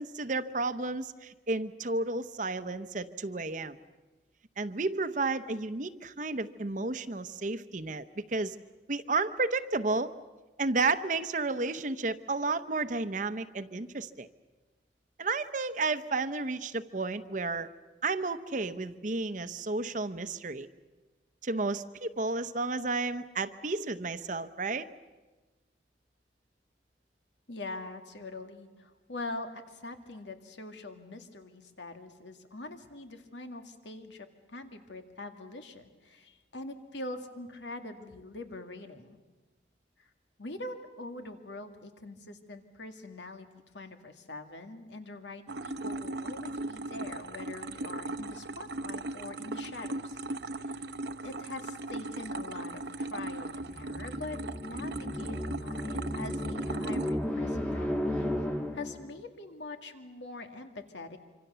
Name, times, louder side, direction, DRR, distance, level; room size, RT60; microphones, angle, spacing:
voice 1, 0.0-3.8 4.6-8.6 8.9-10.1 10.6-14.3 15.2-17.7 18.0-20.7 21.4-24.9, right 3 dB, 45° right, 11 dB, 0.8 m, -32 dB
voice 2, 27.5-39.2 40.0-40.1 40.4-50.2 50.5-50.8 51.2-58.3 58.7-61.2, left 2 dB, 90° left, 6 dB, 2.2 m, -43 dB
sound 1, 45.5-57.1, right 2 dB, 70° right, 0.9 m, -38 dB
sound 2, 53.6-59.1, left 1 dB, 5° left, 1.5 m, -34 dB
26.0 x 25.5 x 6.9 m, 1.2 s
head